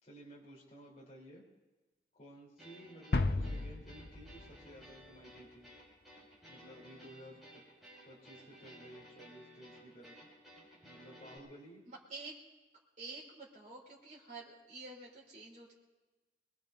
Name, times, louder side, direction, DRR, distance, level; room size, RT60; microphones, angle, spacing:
voice 1, 0.0-1.4 2.1-5.7 6.5-7.6 8.0-10.2 10.8-11.8, right 1 dB, 40° left, -5 dB, 3.8 m, -54 dB
sound 1, 2.6-11.4, equal, ahead, 6.1 m, -57 dB
sound 2, 3.1-5.2, left 2 dB, 65° left, 0.8 m, -34 dB
voice 2, 3.4-3.7 12.1-12.3 13.0-15.7, right 3 dB, 45° right, -6 dB, 4.2 m, -49 dB
23.5 x 21.5 x 2.8 m, 1.2 s
head